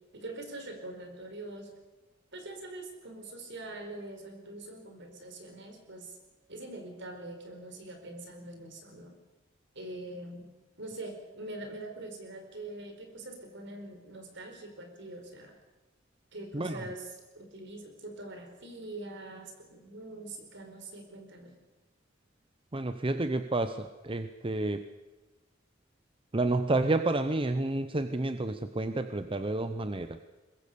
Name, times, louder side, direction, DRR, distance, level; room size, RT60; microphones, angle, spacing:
voice 1, 0.1-1.7 2.3-6.2 6.5-9.2 9.7-10.5 10.8-15.6 16.3-21.5, right 2 dB, 60° right, 5 dB, 4.6 m, -43 dB
voice 2, 16.5-16.8 22.7-24.9 26.3-30.2, right 2 dB, 25° right, 10 dB, 0.8 m, -30 dB
23.0 x 21.0 x 6.8 m, 1.2 s
head